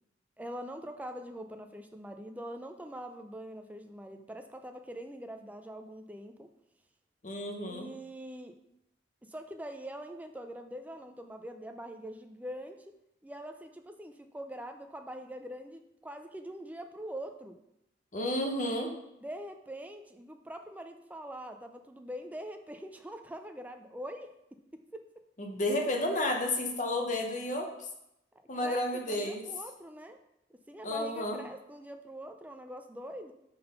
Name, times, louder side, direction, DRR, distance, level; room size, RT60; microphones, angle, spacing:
voice 1, 0.4-6.5 7.7-8.6 9.2-13.0 13.2-17.6 19.2-25.1 28.6-30.2 30.7-33.3, equal, 10° right, 6 dB, 0.4 m, -43 dB
voice 2, 7.2-7.9 18.1-18.9 25.4-27.7 28.5-29.4 30.8-31.4, left 1 dB, 40° left, 2 dB, 0.9 m, -31 dB
5.7 x 3.9 x 5.4 m, 0.84 s
head